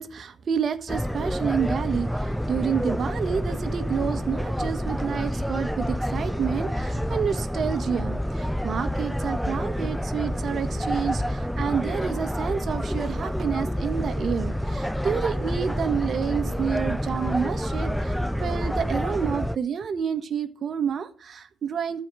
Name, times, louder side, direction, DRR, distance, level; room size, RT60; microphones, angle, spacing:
voice 1, 0.0-22.0, right 7 dB, 55° right, 9 dB, 1.6 m, -29 dB
sound 1, 0.9-19.6, equal, ahead, 0.5 m, -28 dB
14.0 x 4.7 x 9.1 m, 0.41 s
cardioid pair, 90°, 0 cm